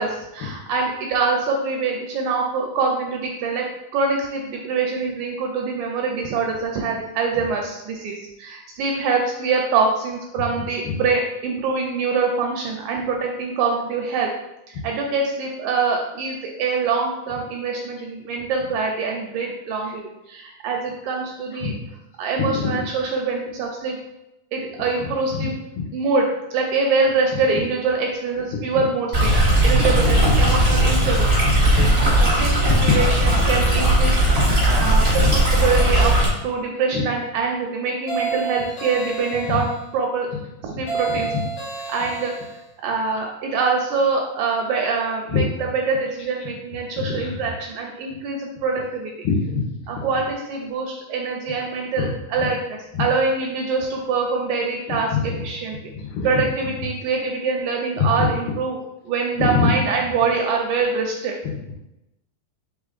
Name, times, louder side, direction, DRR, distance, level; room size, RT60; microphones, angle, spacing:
voice 1, 0.0-3.7 3.9-14.3 14.7-21.7 22.2-24.0 24.5-25.6 25.9-29.3 29.6-31.3 32.2-34.1 34.6-36.2 36.4-40.3 40.6-41.3 41.9-42.3 42.8-49.1 49.9-55.8 56.2-61.3, right 4 dB, 80° right, 1 dB, 1.7 m, -24 dB
voice 2, 22.4-22.7 25.3-25.5 29.8-30.1 31.6-31.9 32.3-32.4 32.7-32.9 33.3-33.4 34.3-34.5 35.1-35.3 39.5-39.6 41.3-41.4 45.3-45.4 47.0-47.3 49.2-49.7 49.9-50.0 52.0-52.1 55.1-55.4 55.9-56.3 58.2-58.3 59.4-59.7, left 6 dB, 85° left, 0 dB, 2.3 m, -23 dB
Stream, 29.1-36.3, right 1 dB, 45° right, 0.7 m, -17 dB
sound 1, 38.1-39.8 40.9-42.6, right 5 dB, 65° left, 2.2 m, -30 dB
5.0 x 3.5 x 2.4 m, 0.90 s
omnidirectional pair, 3.7 m